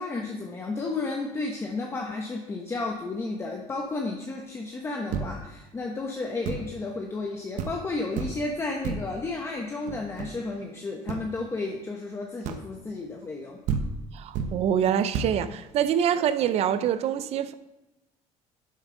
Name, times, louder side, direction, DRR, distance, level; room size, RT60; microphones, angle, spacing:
voice 1, 0.0-13.6, left 3 dB, 20° left, 0.9 m, -32 dB
sound 1, 5.1-5.6 6.4-6.8 7.2-7.3 7.6-7.9 8.2-8.5 8.8-9.2 9.9-10.5 11.1-11.3 12.4-12.8 13.4-13.5 13.7-14.7 15.1-15.5, right 5 dB, 75° right, 1.0 m, -32 dB
voice 2, 14.1-17.5, right 9 dB, 55° right, 0.6 m, -25 dB
11.0 x 7.2 x 3.8 m
cardioid pair, 145°, 13 cm